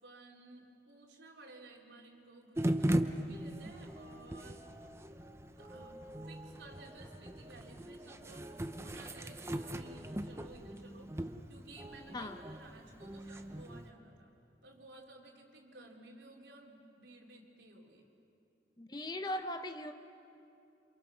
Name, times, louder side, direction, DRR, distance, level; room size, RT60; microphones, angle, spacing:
voice 1, 0.0-4.6 5.6-14.3 14.6-18.1, right 2 dB, 80° right, -1 dB, 3.7 m, -56 dB
sound 1, 2.6-13.9, right 1 dB, 15° right, 0.8 m, -39 dB
voice 2, 18.8-19.9, left 1 dB, 25° left, 8 dB, 1.0 m, -39 dB
28.5 x 27.0 x 6.3 m, 2.7 s
head